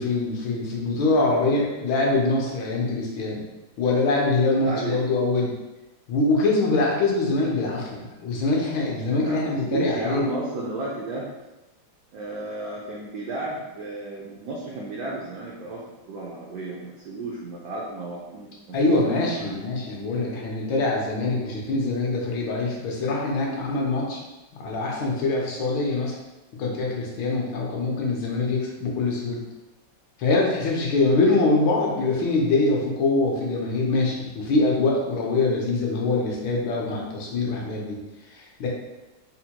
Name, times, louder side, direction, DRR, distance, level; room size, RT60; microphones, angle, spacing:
voice 1, 0.0-3.4 3.8-5.5 6.1-10.2 18.7-24.2 24.6-26.2 26.6-29.4 30.2-38.0 38.3-38.7, left 3 dB, 75° left, -2 dB, 1.5 m, -24 dB
voice 2, 4.6-5.0 9.1-11.3 12.1-19.6, right 2 dB, 80° right, -3 dB, 0.8 m, -33 dB
4.4 x 2.1 x 2.8 m, 1.0 s
omnidirectional pair, 2.2 m